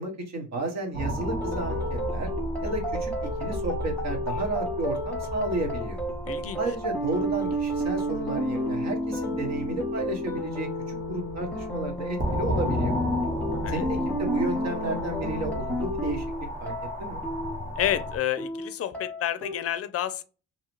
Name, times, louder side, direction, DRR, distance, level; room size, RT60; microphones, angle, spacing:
voice 1, 0.0-2.3 2.6-6.0 6.6-12.9 13.7-16.3 16.6-16.7 17.0-17.2, right 2 dB, 60° right, 1.1 m, -32 dB
sound 1, 0.9-18.2, equal, 30° right, 1.0 m, -34 dB
sound 2, 1.2-19.5, equal, 5° left, 1.0 m, -31 dB
voice 2, 6.3-6.6 13.6-13.8 17.8-20.2, left 11 dB, 50° left, 0.4 m, -29 dB
2.7 x 2.4 x 2.9 m
cardioid pair, 90°, 30 cm